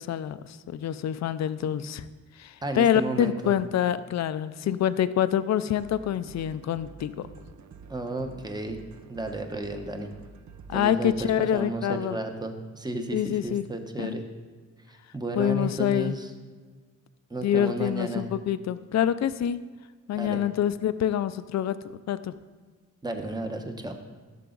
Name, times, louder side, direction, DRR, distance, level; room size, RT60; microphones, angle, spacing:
voice 1, 0.0-2.0 2.4-7.2 10.7-12.2 13.1-13.6 14.0-14.1 15.4-16.2 17.4-19.6 20.1-21.8 22.1-22.3, left 10 dB, 65° left, 14 dB, 0.5 m, -26 dB
voice 2, 2.6-3.5 7.9-8.8 9.1-10.1 10.7-14.2 14.9-16.3 17.3-18.3 20.1-20.4 23.0-24.0, right 2 dB, 15° right, 5 dB, 0.9 m, -33 dB
sound 1, 5.6-11.6, right 5 dB, 75° right, 0.7 m, -48 dB
16.0 x 6.8 x 3.9 m, 1.4 s
wide cardioid pair, 160°, 29 cm